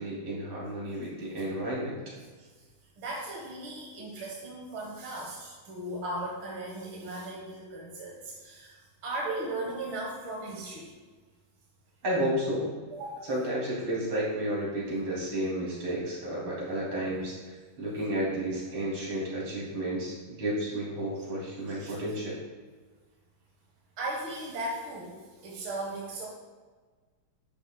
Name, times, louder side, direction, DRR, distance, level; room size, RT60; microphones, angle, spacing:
voice 1, 0.0-2.1 12.0-12.7 13.2-22.4, right 1 dB, 90° right, -5 dB, 3.7 m, -32 dB
voice 2, 3.0-10.9 12.9-13.3 21.7-21.9 24.0-26.3, right 1 dB, 70° right, -3 dB, 2.2 m, -37 dB
11.0 x 9.1 x 2.3 m, 1.4 s
omnidirectional pair, 2.3 m